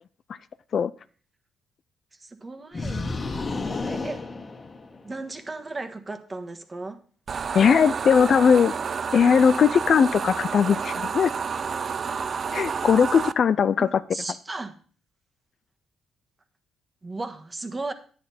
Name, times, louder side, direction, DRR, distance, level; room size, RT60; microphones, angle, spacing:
voice 1, 2.2-3.0 3.5-4.2 5.0-7.0 13.8-14.8 17.0-17.9, right 2 dB, 25° right, 8 dB, 1.4 m, -35 dB
sound 1, 2.7-5.2, left 3 dB, 30° left, 1.5 m, -31 dB
sound 2, 7.3-13.3, right 6 dB, 45° right, 0.4 m, -30 dB
voice 2, 7.5-8.7 9.1-11.3 12.5-14.0, left 7 dB, 55° left, 15 dB, 0.4 m, -19 dB
10.0 x 9.3 x 4.3 m, 0.42 s
cardioid pair, 90°, 0 cm